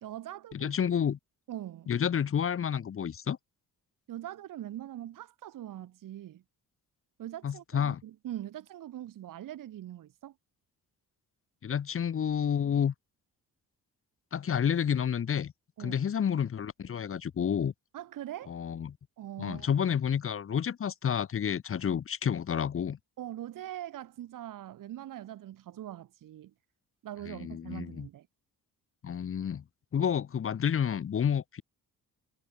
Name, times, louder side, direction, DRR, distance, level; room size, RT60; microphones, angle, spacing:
voice 1, 0.0-0.7 1.5-1.9 4.1-6.4 7.2-10.3 15.8-16.0 17.9-18.6 19.2-19.8 23.2-26.5 27.0-28.3, right 12 dB, 65° right, 1.4 m, -42 dB
voice 2, 0.5-1.2 1.9-3.4 7.4-8.0 11.6-12.9 14.3-15.5 15.8-17.7 18.5-19.0 19.4-23.0 27.3-28.1 29.0-29.6 29.9-31.6, left 8 dB, 40° left, 1.2 m, -30 dB
cardioid pair, 155°, 35 cm